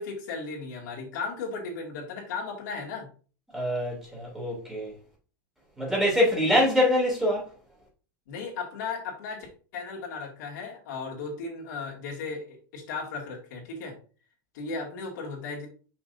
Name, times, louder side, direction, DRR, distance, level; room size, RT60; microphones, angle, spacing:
voice 1, 0.0-3.1 8.3-14.0 14.5-15.7, left 4 dB, 70° left, 2.4 m, -36 dB
voice 2, 3.5-4.9 5.8-7.4, left 1 dB, 5° right, 3.0 m, -24 dB
6.1 x 5.8 x 2.7 m
supercardioid pair, 155°, 10 cm